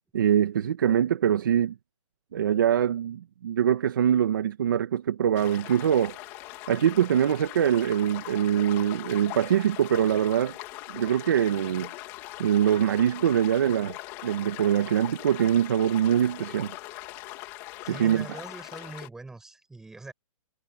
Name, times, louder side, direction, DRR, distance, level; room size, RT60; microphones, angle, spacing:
voice 1, 0.1-1.7 2.3-6.2 6.7-10.5 10.9-11.9 12.4-14.0 14.2-16.7 17.9-18.3, right 9 dB, 35° right, 1.9 m, -23 dB
sound 1, 5.3-19.1, left 18 dB, 15° left, 3.2 m, -41 dB
voice 2, 17.8-20.1, right 3 dB, 5° right, 6.6 m, -43 dB
hypercardioid pair, 175°, 18 cm